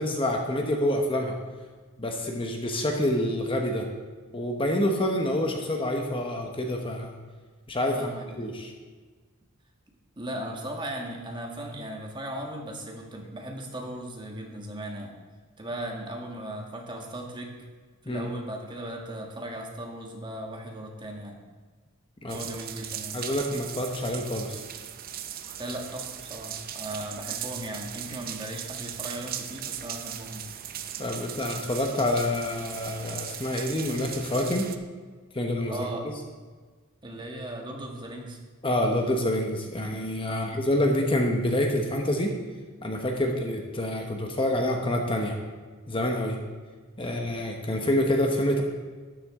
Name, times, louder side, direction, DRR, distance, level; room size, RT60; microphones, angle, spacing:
voice 1, 0.0-1.4 2.0-3.9 4.3-7.1 7.7-8.0 8.4-8.7 18.1-18.3 22.2-22.4 23.1-24.6 31.0-34.7 35.3-35.9 38.6-42.3 42.8-45.4 45.9-46.4 47.0-48.6, left 1 dB, 25° left, 2 dB, 1.1 m, -27 dB
voice 2, 7.9-8.6 10.2-15.1 15.6-17.5 18.1-21.4 22.3-23.2 25.4-30.6 35.7-36.1 37.0-38.4 40.3-40.6 43.2-43.3 47.0-47.3, right 1 dB, 20° right, 1 dB, 1.6 m, -37 dB
sound 1, 22.3-34.8, right 10 dB, 45° right, 0.7 m, -38 dB
12.5 x 10.5 x 3.7 m, 1.4 s
head